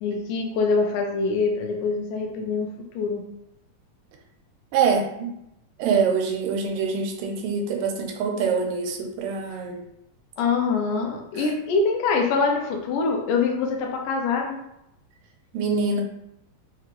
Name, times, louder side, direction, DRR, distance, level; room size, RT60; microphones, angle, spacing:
voice 1, 0.0-3.2 10.4-14.6, left 4 dB, 80° left, 1 dB, 2.2 m, -24 dB
voice 2, 4.7-5.3 5.8-9.8 15.5-16.0, right 5 dB, 90° right, 2 dB, 2.3 m, -24 dB
5.8 x 2.5 x 3.0 m, 0.82 s
omnidirectional pair, 3.8 m